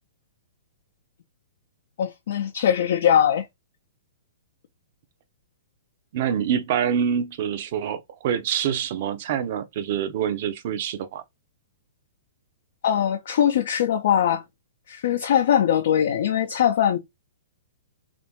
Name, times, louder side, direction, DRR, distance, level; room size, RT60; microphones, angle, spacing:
voice 1, 2.0-3.4 12.8-14.4 14.9-17.0, left 9 dB, 55° left, 0.5 m, -21 dB
voice 2, 6.1-11.2, right 8 dB, 45° right, 0.6 m, -26 dB
3.3 x 2.5 x 2.9 m
figure-of-eight pair, 110°, 0 cm